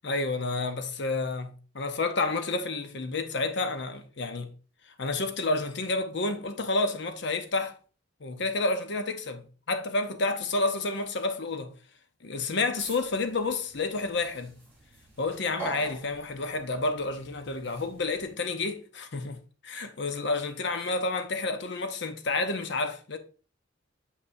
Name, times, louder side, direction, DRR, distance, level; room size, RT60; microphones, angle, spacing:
voice 1, 0.0-4.5 4.9-7.8 8.2-11.7 12.2-14.6 15.2-23.2, left 3 dB, 60° left, 0.8 m, -30 dB
sound 1, 12.8-18.3, right 2 dB, 10° left, 2.6 m, -45 dB
6.5 x 5.6 x 2.7 m
head